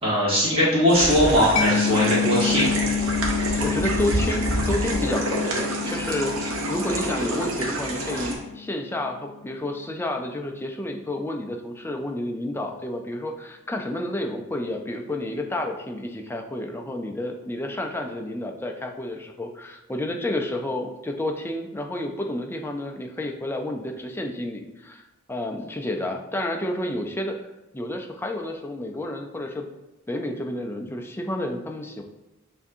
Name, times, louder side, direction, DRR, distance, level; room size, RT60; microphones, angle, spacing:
voice 1, 0.0-2.7, equal, 30° right, -7 dB, 1.3 m, -20 dB
sound 1, 0.9-8.3, right 1 dB, 80° right, 0.9 m, -27 dB
Mallet percussion, 1.6-8.9, left 7 dB, 75° left, 0.5 m, -28 dB
voice 2, 3.6-27.4 27.7-29.7 30.1-32.0, left 1 dB, 10° left, 3 dB, 0.4 m, -30 dB
7.1 x 2.7 x 2.6 m, 0.98 s
head